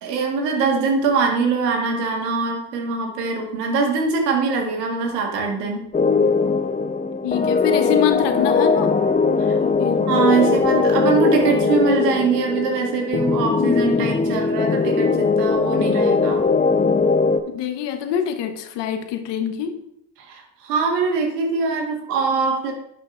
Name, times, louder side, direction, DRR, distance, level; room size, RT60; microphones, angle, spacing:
voice 1, 0.0-5.8 9.4-9.6 10.1-16.4 20.2-22.7, right 4 dB, 85° right, 1 dB, 1.7 m, -22 dB
sound 1, 5.9-17.4, left 4 dB, 15° left, 0.7 m, -20 dB
voice 2, 7.2-9.0 9.6-10.1 17.5-19.8, left 9 dB, 65° left, 7 dB, 1.2 m, -25 dB
11.0 x 6.5 x 2.5 m, 0.76 s
hypercardioid pair, 65°, 46 cm